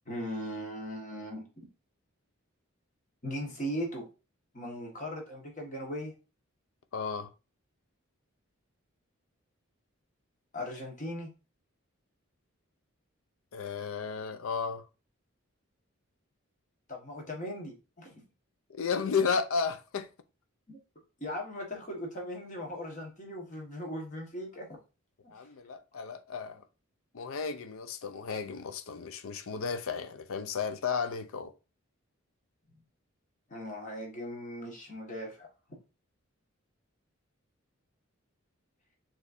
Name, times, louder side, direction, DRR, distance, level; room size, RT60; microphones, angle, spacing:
voice 1, 0.1-1.4 3.2-4.1 4.5-6.1 10.5-11.3 16.9-18.2 20.7-20.8 21.2-24.7 25.2-25.3 33.5-35.5, equal, 35° left, 1.4 m, -38 dB
voice 2, 6.9-7.3 13.5-14.8 18.7-20.1 25.3-26.6 27.1-31.5, left 5 dB, 80° left, 0.5 m, -33 dB
6.4 x 3.0 x 2.6 m
head